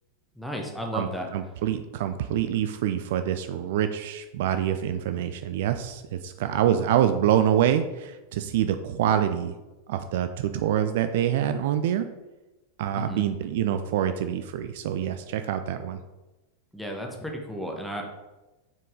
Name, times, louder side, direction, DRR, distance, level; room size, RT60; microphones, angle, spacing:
voice 1, 0.3-1.3 13.0-13.2 16.7-18.1, equal, ahead, 1 dB, 1.1 m, -33 dB
voice 2, 0.9-9.6 9.9-12.1 12.8-16.0, right 10 dB, 55° right, 9 dB, 0.3 m, -26 dB
5.9 x 4.5 x 3.7 m, 1.1 s
figure-of-eight pair, 90°, 0 cm